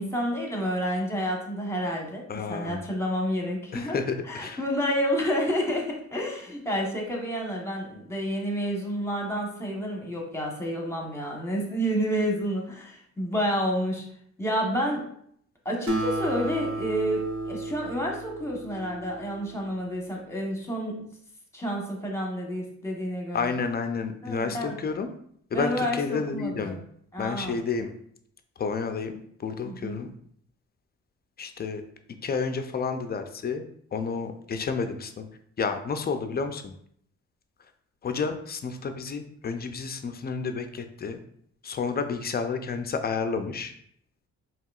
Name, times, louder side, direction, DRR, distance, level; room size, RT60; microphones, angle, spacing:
voice 1, 0.0-2.2 2.5-4.0 4.3-14.0 14.4-15.0 15.6-21.0 21.5-23.5 24.2-24.7 25.5-26.8 27.1-27.6 29.6-30.0, equal, 10° left, 0 dB, 1.1 m, -29 dB
voice 2, 2.3-2.8 3.7-4.6 23.3-25.2 25.5-26.8 27.2-28.0 28.6-30.1 31.4-31.8 32.2-33.6 33.9-35.3 35.6-36.7 38.0-41.2 41.6-43.7, left 5 dB, 35° left, 7 dB, 0.4 m, -30 dB
Acoustic guitar, 15.9-19.6, right 2 dB, 45° right, 0.9 m, -33 dB
4.6 x 2.9 x 2.4 m, 0.66 s
cardioid pair, 90°, 30 cm